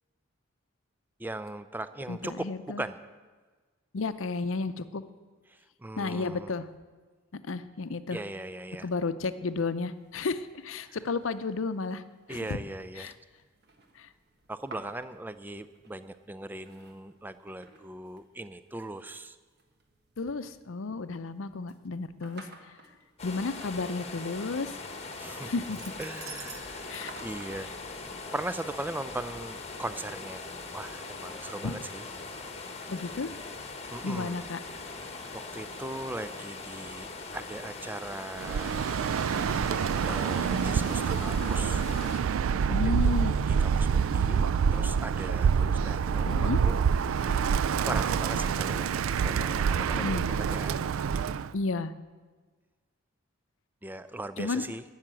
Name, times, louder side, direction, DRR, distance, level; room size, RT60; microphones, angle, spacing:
voice 1, 1.2-2.5 2.8-3.0 5.5-6.6 8.1-8.9 10.8-11.0 12.3-13.1 14.5-19.4 25.2-25.5 26.0-27.7 28.3-30.4 30.7-32.0 33.9-34.5 34.7-34.8 35.3-37.1 37.3-38.7 40.1-41.8 43.1-46.8 47.3-50.8 53.8-54.8, right 2 dB, 10° right, 13 dB, 0.4 m, -39 dB
voice 2, 2.1-2.8 3.9-5.0 6.0-6.7 7.4-8.2 8.8-12.0 12.3-12.6 13.0-13.1 14.0-14.1 20.2-22.5 23.2-24.8 25.1-25.8 26.9-27.2 31.6-31.8 32.9-33.3 34.0-34.6 42.7-43.4 46.2-46.6 49.9-50.2 51.5-51.9 54.4-54.7, left 3 dB, 70° left, 12 dB, 0.6 m, -32 dB
sound 1, 9.8-27.5, right 4 dB, 50° right, 1.4 m, -53 dB
sound 2, 23.2-42.2, left 3 dB, 30° left, 1.3 m, -41 dB
Bird, 38.4-51.5, right 6 dB, 80° right, 0.4 m, -27 dB
12.0 x 7.3 x 9.0 m, 1.4 s
head